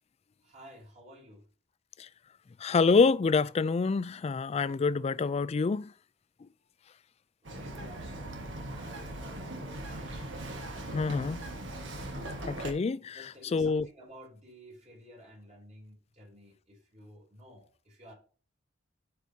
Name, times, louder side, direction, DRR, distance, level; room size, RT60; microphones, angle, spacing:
voice 1, 0.4-1.4 7.4-10.4 10.7-11.7 13.1-18.1, equal, 35° right, 3.5 m, -53 dB
voice 2, 2.6-5.9 10.9-11.4 12.4-13.2 13.5-13.9, left 4 dB, 35° left, 0.3 m, -26 dB
Bird vocalization bird call bird song, 7.4-12.7, right 1 dB, 70° right, 1.5 m, -39 dB
12.0 x 4.8 x 2.8 m
head